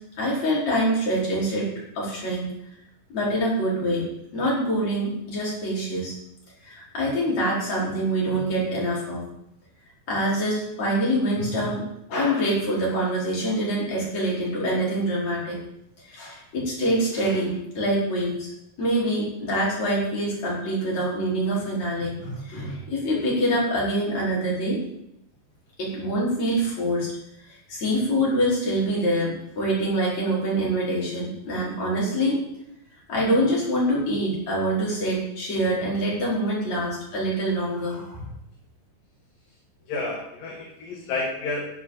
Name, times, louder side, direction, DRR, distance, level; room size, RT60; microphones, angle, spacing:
voice 1, 0.2-1.7 2.0-2.5 3.1-4.1 4.3-6.1 6.6-9.2 10.1-11.8 12.1-15.6 16.0-18.5 18.8-24.8 25.8-27.1 27.5-32.4 33.1-38.3, right 1 dB, 45° left, -5 dB, 5.7 m, -25 dB
voice 2, 39.9-41.8, left 3 dB, 65° left, -2 dB, 3.3 m, -30 dB
14.5 x 10.5 x 4.0 m, 0.78 s
omnidirectional pair, 4.4 m